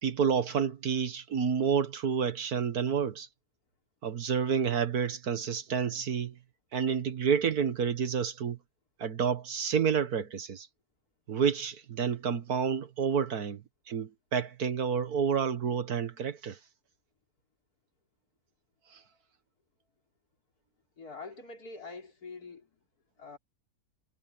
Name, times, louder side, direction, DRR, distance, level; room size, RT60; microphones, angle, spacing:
voice 1, 0.0-3.3 4.0-6.3 6.7-8.6 9.0-10.7 11.3-13.6 13.9-16.6, right 6 dB, 80° right, 2.0 m, -29 dB
voice 2, 21.0-22.7 23.2-23.4, left 4 dB, 85° left, 4.5 m, -44 dB
omnidirectional pair, 1.6 m